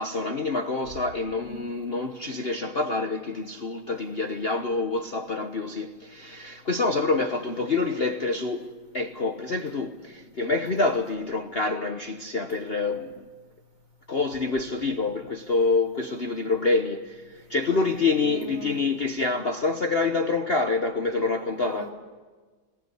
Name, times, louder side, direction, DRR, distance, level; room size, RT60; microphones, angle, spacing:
voice 1, 0.0-13.1 14.1-21.9, left 3 dB, 40° left, 0.9 m, -27 dB
voice 2, 17.6-18.9 21.5-21.9, equal, 70° right, 4.8 m, -43 dB
24.5 x 19.0 x 9.8 m
omnidirectional pair, 2.2 m